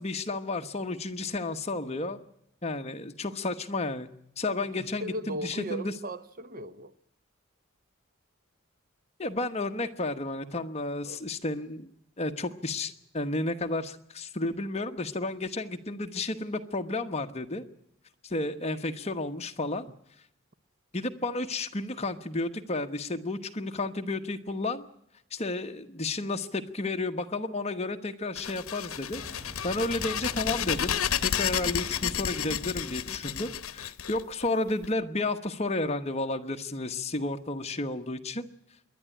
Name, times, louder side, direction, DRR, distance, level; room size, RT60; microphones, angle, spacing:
voice 1, 0.0-2.2 2.6-4.1 4.4-5.9 9.2-11.9 12.2-17.6 18.2-19.9 20.9-24.9 25.3-29.2 29.6-38.5, left 2 dB, 30° left, 1.1 m, -32 dB
voice 2, 4.6-6.9 11.0-11.2, right 1 dB, 40° right, 0.8 m, -37 dB
sound 1, 28.4-34.9, left 9 dB, 80° left, 0.8 m, -31 dB
Boom, 29.2-34.0, equal, 10° right, 7.4 m, -46 dB
26.5 x 11.5 x 9.9 m
head